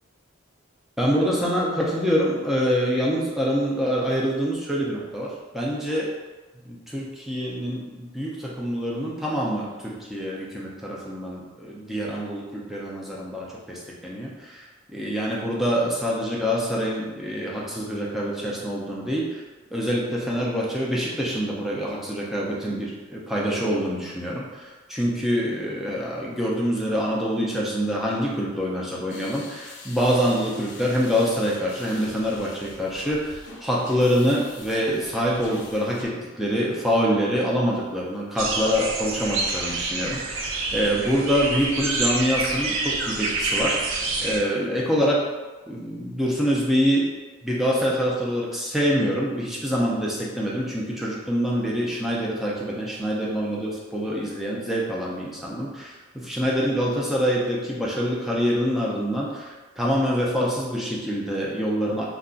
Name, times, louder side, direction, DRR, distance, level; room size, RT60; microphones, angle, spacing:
voice 1, 1.0-6.1 6.6-19.4 19.7-45.3 45.7-47.1 47.4-62.0, equal, ahead, -5 dB, 0.4 m, -25 dB
sound 1, 29.1-36.1, left 3 dB, 60° left, 0.5 m, -44 dB
sound 2, 38.4-44.4, right 3 dB, 80° right, 0.4 m, -27 dB
2.3 x 2.2 x 3.7 m, 1.3 s
head